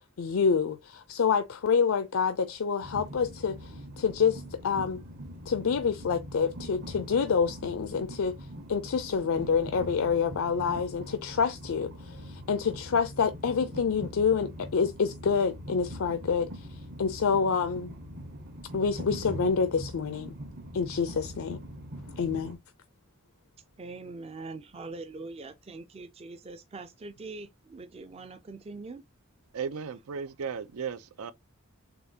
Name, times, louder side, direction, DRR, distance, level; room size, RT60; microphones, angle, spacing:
voice 1, 0.2-5.0 5.5-8.3 8.7-16.7 17.0-17.9 18.7-20.3 20.7-21.6 22.2-22.6, left 6 dB, 75° left, 0.5 m, -27 dB
Train, 2.8-22.6, equal, 50° right, 1.0 m, -42 dB
voice 2, 23.8-29.0, right 3 dB, 25° right, 0.4 m, -42 dB
voice 3, 29.5-31.3, right 6 dB, 85° right, 0.5 m, -35 dB
6.7 x 2.3 x 2.7 m
head